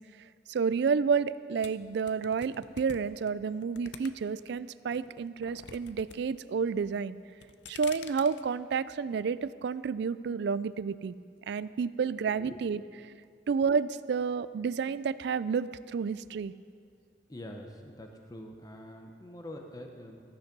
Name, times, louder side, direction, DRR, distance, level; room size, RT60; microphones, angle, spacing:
voice 1, 0.5-7.2 7.7-11.1 11.5-13.1 13.5-16.5, right 5 dB, 60° right, 16 dB, 0.3 m, -30 dB
sound 1, 1.6-4.5 4.9-6.2 6.4-6.9 7.3-8.4, left 6 dB, 65° left, 0.6 m, -47 dB
voice 2, 17.3-20.2, left 1 dB, 20° left, 3 dB, 0.8 m, -45 dB
14.5 x 9.5 x 6.0 m, 2.2 s
head